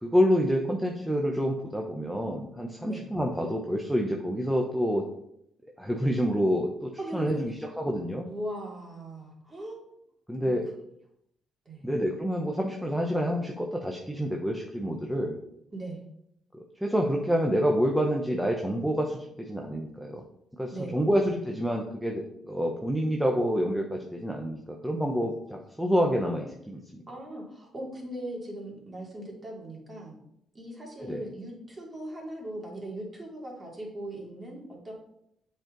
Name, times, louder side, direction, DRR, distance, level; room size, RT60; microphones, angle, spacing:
voice 1, 0.0-5.0 5.8-8.3 10.3-10.7 11.8-15.4 16.5-20.2 20.6-27.0 31.0-31.2, equal, 5° right, 1 dB, 0.9 m, -28 dB
voice 2, 7.0-7.5 8.2-9.8 10.4-10.6 11.6-11.9 15.7-16.0 20.7-21.0 27.1-30.2 30.5-34.9, right 1 dB, 25° right, -2 dB, 2.8 m, -39 dB
7.7 x 4.5 x 3.9 m, 0.74 s
cardioid pair, 90°, 0 cm